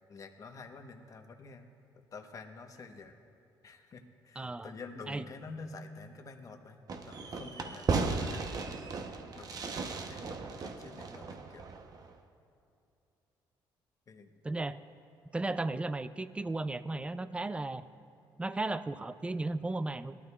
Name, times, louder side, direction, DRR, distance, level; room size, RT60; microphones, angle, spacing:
voice 1, 0.1-1.7 2.1-3.2 3.6-6.8 7.1-8.4 9.3-11.7 14.1-14.3, left 4 dB, 40° left, 5 dB, 1.0 m, -48 dB
voice 2, 4.4-4.7 5.1-5.3 14.4-14.8 15.3-17.8 18.4-20.1, right 2 dB, 15° right, 14 dB, 0.4 m, -35 dB
Fireworks, 6.9-12.1, right 4 dB, 45° right, 0.8 m, -36 dB
18.5 x 12.5 x 2.4 m, 2.6 s
cardioid pair, 95°, 9 cm